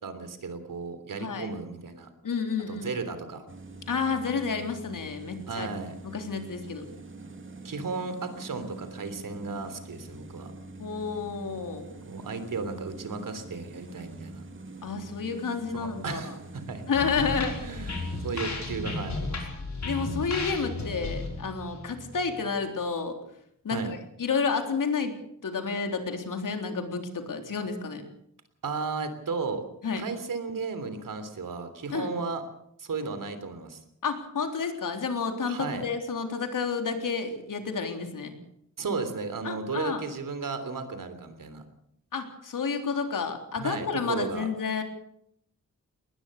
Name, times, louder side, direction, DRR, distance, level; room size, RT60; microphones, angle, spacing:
voice 1, 0.0-2.1 2.7-3.5 5.5-6.0 7.6-10.5 12.0-14.4 15.7-16.8 17.6-19.4 23.7-23.9 28.6-29.6 30.0-32.4 32.8-33.8 35.5-35.8 38.8-41.6 43.6-44.5, right 4 dB, 75° right, 10 dB, 3.4 m, -34 dB
voice 2, 1.2-1.5 2.2-2.9 3.9-5.7 6.1-6.8 10.8-11.9 14.8-16.4 16.9-17.8 19.8-23.2 23.6-25.2 25.4-28.0 29.8-30.0 31.9-32.1 34.0-38.3 39.4-40.0 42.1-44.8, left 5 dB, 75° left, 5 dB, 3.6 m, -30 dB
sound 1, 3.5-18.5, right 2 dB, 40° right, 2.5 m, -45 dB
sound 2, 16.9-22.6, left 2 dB, 55° left, 5.2 m, -34 dB
20.5 x 20.0 x 6.7 m, 0.72 s
wide cardioid pair, 160°, 33 cm